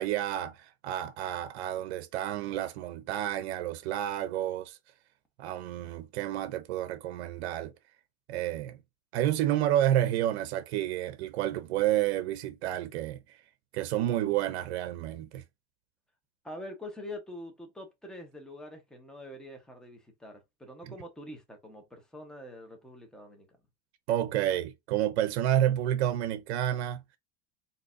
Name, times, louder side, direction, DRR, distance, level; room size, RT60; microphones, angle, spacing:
voice 1, 0.0-4.8 5.4-7.7 8.3-8.8 9.1-13.2 13.7-15.4 20.9-21.0 24.1-27.0, right 12 dB, 75° right, 0.6 m, -30 dB
voice 2, 16.4-23.5, left 1 dB, ahead, 1.0 m, -45 dB
3.7 x 2.7 x 2.6 m
supercardioid pair, 120°, 33 cm